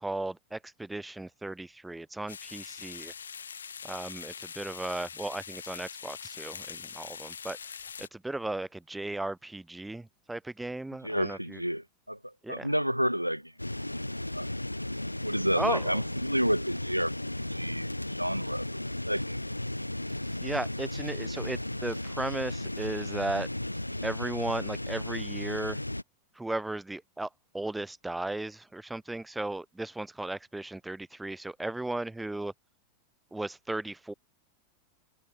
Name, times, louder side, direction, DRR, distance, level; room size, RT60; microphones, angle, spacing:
voice 1, 0.0-3.1 3.8-7.6 8.0-11.6 12.4-12.7 15.6-16.0 20.4-23.5 24.0-25.8 26.4-27.3 27.5-32.5 33.3-34.1, right 2 dB, 5° right, 0.4 m, -36 dB
sound 1, 2.3-8.1, left 6 dB, 70° left, 1.3 m, -43 dB
voice 2, 11.0-12.2 12.5-13.5 14.0-14.5 15.2-18.7 19.1-19.4, equal, 90° right, 0.5 m, -30 dB
sound 2, 13.6-26.0, left 1 dB, 85° left, 1.0 m, -35 dB
sound 3, 20.1-24.5 24.7-24.8, right 10 dB, 65° right, 5.5 m, -60 dB
figure-of-eight pair, 90°, 0 cm